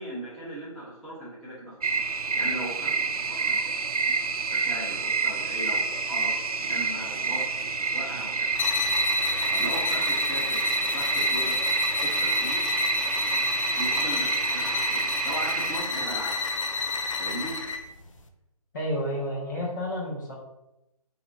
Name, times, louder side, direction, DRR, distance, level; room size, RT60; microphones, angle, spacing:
voice 1, 0.0-1.7 2.3-3.8 4.5-5.8 6.1-8.5 9.5-11.5 12.0-12.8 13.8-16.5 17.2-17.5, right 1 dB, ahead, -15 dB, 0.9 m, -38 dB
sound 1, 1.8-15.8, right 4 dB, 70° right, 0.5 m, -28 dB
sound 2, 8.5-17.9, left 2 dB, 55° left, 0.5 m, -28 dB
voice 2, 18.7-20.3, equal, 30° left, -4 dB, 1.1 m, -30 dB
5.7 x 2.8 x 2.5 m, 0.92 s
figure-of-eight pair, 150°, 20 cm